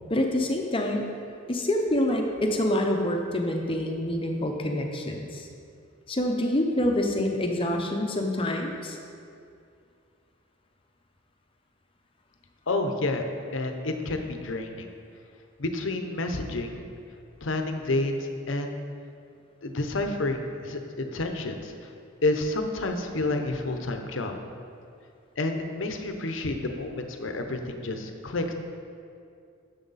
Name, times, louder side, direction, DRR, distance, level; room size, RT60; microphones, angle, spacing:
voice 1, 0.1-1.0 1.5-5.5 6.1-9.0, left 1 dB, 25° left, 2 dB, 0.8 m, -26 dB
voice 2, 12.7-14.9 15.6-16.9 17.4-18.8 19.6-21.9 22.2-24.3 25.4-28.5, left 2 dB, 70° left, 5 dB, 0.8 m, -29 dB
10.5 x 7.1 x 4.1 m, 2.4 s
head